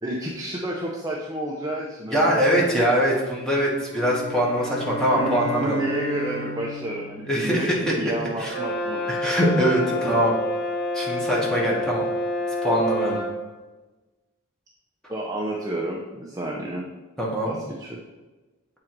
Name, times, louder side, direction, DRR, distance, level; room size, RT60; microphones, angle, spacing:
voice 1, 0.0-2.4 2.7-2.8 5.1-9.1 9.9-10.2 15.1-16.8 17.4-18.0, right 1 dB, 15° right, -3 dB, 0.6 m, -30 dB
voice 2, 2.1-5.8 7.3-7.9 8.4-8.6 9.1-10.3 10.9-12.0 12.6-13.2 17.2-17.6, equal, 5° left, -5 dB, 1.4 m, -22 dB
sound 1, 3.9-8.3, left 1 dB, 70° right, 0.9 m, -34 dB
Brass instrument, 8.5-13.4, left 1 dB, 45° left, 1.2 m, -28 dB
7.4 x 3.8 x 4.5 m, 1.2 s
head